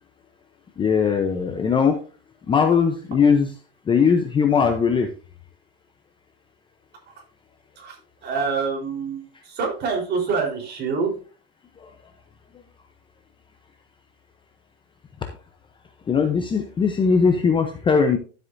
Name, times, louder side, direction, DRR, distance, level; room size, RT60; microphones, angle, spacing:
voice 1, 0.8-2.0 2.5-3.5 3.9-5.1 16.1-18.2, left 6 dB, 15° left, 6 dB, 0.7 m, -19 dB
voice 2, 8.2-11.1, right 5 dB, 30° right, 0 dB, 3.9 m, -26 dB
12.5 x 7.9 x 2.6 m, 0.37 s
supercardioid pair, 135°, 31 cm